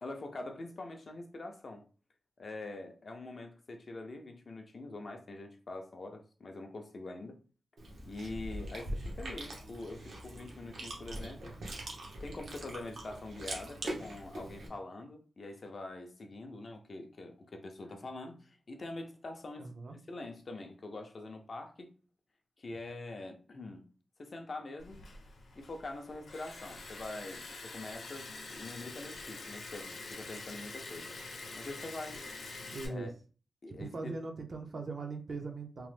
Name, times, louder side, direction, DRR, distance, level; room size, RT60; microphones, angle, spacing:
voice 1, 0.0-1.8 2.4-7.4 8.0-11.5 12.2-21.9 22.6-23.9 24.2-25.0 25.6-31.2 31.5-32.2 32.8-33.1 33.6-34.2, left 2 dB, 40° left, 0.4 m, -44 dB
Chewing mastication, 7.8-14.7, right 1 dB, 75° right, 0.8 m, -42 dB
voice 2, 19.6-20.0 32.7-33.1 33.7-35.9, right 3 dB, 50° right, 0.5 m, -40 dB
Liquid, 24.8-32.9, left 3 dB, 80° left, 0.7 m, -46 dB
2.9 x 2.0 x 3.2 m
wide cardioid pair, 160°, 0 cm